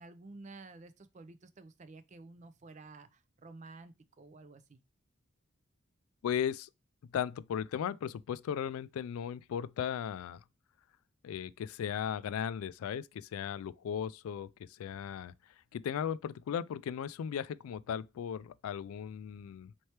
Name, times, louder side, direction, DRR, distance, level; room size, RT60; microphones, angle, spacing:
voice 1, 0.0-4.8, right 3 dB, 35° right, 0.4 m, -52 dB
voice 2, 6.2-6.7 7.1-10.4 11.2-15.3 15.7-19.7, left 8 dB, 90° left, 0.3 m, -36 dB
4.4 x 3.2 x 2.8 m
head